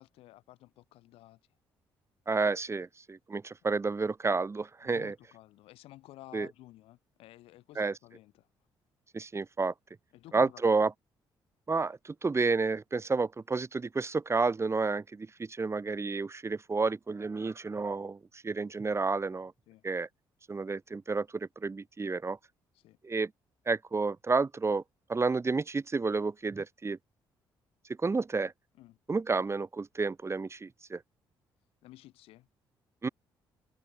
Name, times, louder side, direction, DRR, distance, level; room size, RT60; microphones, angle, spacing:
voice 1, 0.0-1.4 4.8-8.5 10.1-10.6 19.7-19.8 22.7-23.0 28.8-29.0 31.8-32.5, left 16 dB, 85° left, 7.1 m, -53 dB
voice 2, 2.3-5.1 6.3-6.5 7.8-7.9 9.1-9.7 10.3-10.9 11.7-18.2 18.4-19.5 19.8-20.1 20.5-22.4 23.0-23.3 23.7-24.8 25.1-27.0 28.0-28.5 29.1-31.0 33.0-33.1, right 4 dB, 30° right, 2.7 m, -30 dB
supercardioid pair, 70°, 10 cm